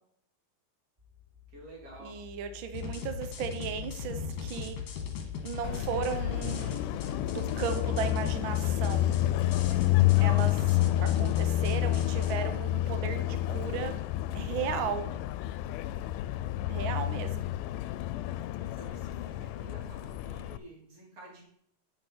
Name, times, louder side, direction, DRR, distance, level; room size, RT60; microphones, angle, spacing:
sound 1, 1.0-20.4, left 9 dB, 20° right, 0.7 m, -47 dB
voice 1, 1.5-2.2 10.2-10.7 16.8-17.3 18.6-21.4, right 1 dB, 50° right, -2 dB, 4.0 m, -51 dB
voice 2, 2.0-4.8 5.4-6.8 7.3-9.1 10.2-13.9 14.3-15.1 16.7-17.5, right 7 dB, 80° right, 8 dB, 1.1 m, -36 dB
sound 2, 2.7-12.3, left 6 dB, 65° left, 2.5 m, -38 dB
Car passing by, 5.6-20.6, left 14 dB, 85° left, 2.1 m, -29 dB
10.0 x 8.4 x 4.4 m, 0.68 s
omnidirectional pair, 3.6 m